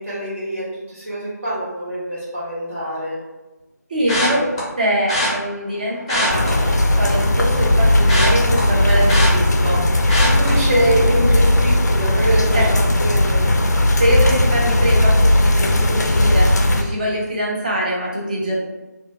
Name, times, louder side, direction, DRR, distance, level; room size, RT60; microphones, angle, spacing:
voice 1, 0.0-3.2 4.3-4.5 10.1-13.7, right 1 dB, 45° right, -10 dB, 1.1 m, -24 dB
voice 2, 3.9-4.4 4.8-9.8 12.5-12.6 14.0-18.6, right 1 dB, 30° right, -4 dB, 0.6 m, -23 dB
sound 1, 4.1-4.6 5.1-5.3 6.0-7.2 7.5-9.8 10.1-10.5 11.0-11.2 11.5-11.6, left 1 dB, 20° left, 0.6 m, -23 dB
sound 2, 6.3-16.8, left 1 dB, 65° left, 0.4 m, -16 dB
2.7 x 2.2 x 2.8 m, 1.1 s
figure-of-eight pair, 160°, 10 cm